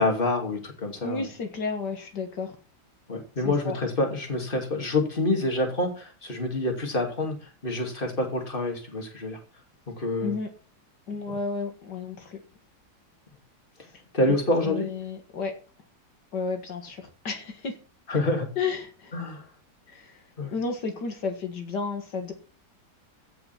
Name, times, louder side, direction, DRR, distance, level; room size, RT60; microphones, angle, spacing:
voice 1, 0.0-1.3 3.1-9.4 10.0-10.3 11.3-11.4 14.1-14.9 18.1-18.5 19.1-19.4 20.4-20.5, left 2 dB, 30° left, 2 dB, 2.9 m, -27 dB
voice 2, 1.0-2.6 3.4-3.8 10.2-10.5 11.1-12.4 14.7-15.5 16.3-17.7 18.6-19.1 19.9-20.2 20.5-22.3, left 4 dB, 80° left, 4 dB, 2.5 m, -32 dB
16.0 x 5.9 x 6.0 m, 0.37 s
omnidirectional pair, 1.8 m